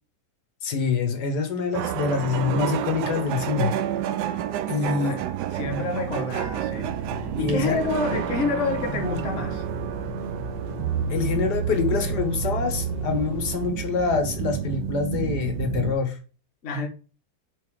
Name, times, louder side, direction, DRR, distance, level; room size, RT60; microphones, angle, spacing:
voice 1, 0.6-3.7 4.7-5.2 7.4-7.8 8.1-8.2 8.9-9.0 11.1-16.2, left 5 dB, 70° left, 1.7 m, -25 dB
sound 1, 1.7-15.9, right 10 dB, 75° right, 1.1 m, -29 dB
voice 2, 4.8-5.2 5.5-6.9 7.4-9.6 16.6-16.9, left 4 dB, 50° left, 1.3 m, -28 dB
sound 2, 6.8-13.7, left 3 dB, 35° right, 1.6 m, -37 dB
5.3 x 4.0 x 4.7 m
omnidirectional pair, 1.8 m